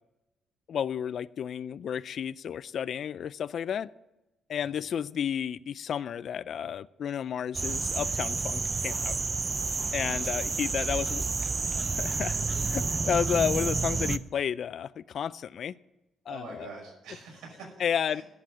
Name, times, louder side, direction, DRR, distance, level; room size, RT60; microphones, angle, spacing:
voice 1, 0.7-3.9 4.5-9.2 9.9-11.2 11.9-15.7 16.3-16.7 17.8-18.2, left 8 dB, 60° left, 19 dB, 0.3 m, -32 dB
sound 1, 7.5-14.2, right 4 dB, 30° right, 0.5 m, -30 dB
voice 2, 10.7-11.8 16.3-17.8 18.1-18.2, right 4 dB, 80° right, -1 dB, 5.7 m, -47 dB
12.0 x 7.5 x 7.3 m, 0.99 s
cardioid pair, 90°, 0 cm